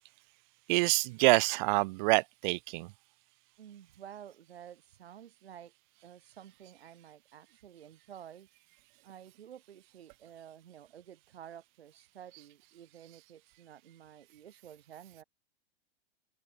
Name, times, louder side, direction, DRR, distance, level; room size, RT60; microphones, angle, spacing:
voice 1, 0.7-2.9, right 25 dB, 50° right, 1.5 m, -26 dB
voice 2, 3.6-5.7 6.0-8.5 9.0-15.2, right 9 dB, 70° right, 5.7 m, -51 dB
hypercardioid pair, 110°, 31 cm